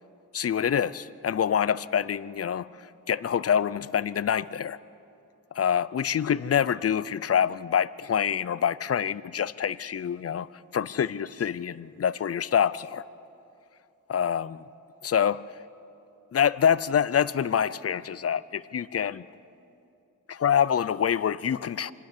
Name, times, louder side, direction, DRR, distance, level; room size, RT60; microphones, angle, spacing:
voice 1, 0.3-2.7 3.1-4.8 5.5-10.5 10.7-13.0 14.1-14.6 15.0-15.4 16.3-19.2 20.3-21.9, left 8 dB, 45° left, 18 dB, 0.5 m, -26 dB
25.5 x 13.0 x 9.9 m, 2.7 s
wide cardioid pair, 105°, 33 cm